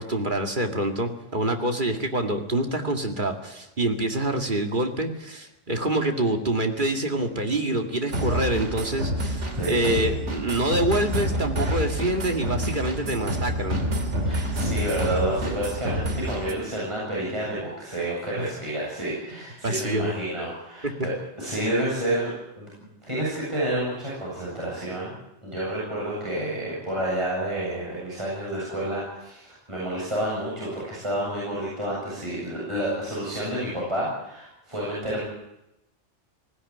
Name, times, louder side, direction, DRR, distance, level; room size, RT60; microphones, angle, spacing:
voice 1, 0.0-13.8 18.4-18.5 19.6-20.1 20.8-21.1, right 1 dB, 40° right, 4 dB, 2.4 m, -26 dB
sound 1, 8.1-16.5, equal, 70° right, 3.0 m, -28 dB
voice 2, 9.5-10.1 14.2-35.2, right 1 dB, 25° right, -7 dB, 7.9 m, -29 dB
20.0 x 16.0 x 9.9 m, 0.86 s
omnidirectional pair, 1.3 m